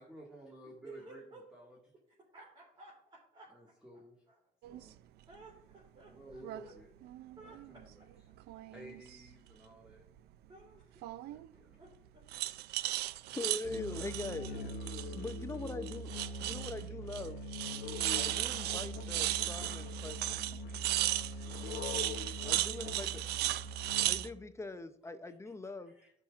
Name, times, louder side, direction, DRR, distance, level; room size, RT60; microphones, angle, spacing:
voice 1, 0.0-1.8 3.5-4.2 4.7-4.9 6.1-6.9 7.4-8.0 8.7-10.0 11.0-11.8 16.4-16.5 16.8-17.1 19.0-19.1 19.8-19.9 25.5-25.6 25.9-26.1, right 1 dB, 5° right, -4 dB, 1.8 m, -54 dB
voice 2, 0.8-1.4 2.3-3.7 4.3-4.4 5.3-6.7 7.4-7.8 10.5-11.1 11.8-12.3 14.2-14.8 22.7-23.6, right 2 dB, 30° right, -4 dB, 3.0 m, -55 dB
sound 1, 4.6-4.8 6.3-6.6 7.0-7.9 8.4-9.3 11.0-11.5 12.3-15.4 15.7-16.8 17.1-17.3 17.5-24.3, right 15 dB, 75° right, 0.4 m, -36 dB
voice 3, 13.3-14.5 15.1-16.1 16.4-17.4 18.1-20.5 22.4-23.1 24.0-25.9, left 2 dB, 15° left, 10 dB, 0.5 m, -42 dB
Musical instrument, 13.6-24.4, left 1 dB, 65° left, 0.8 m, -42 dB
12.5 x 5.8 x 2.5 m, 0.69 s
cardioid pair, 110°, 17 cm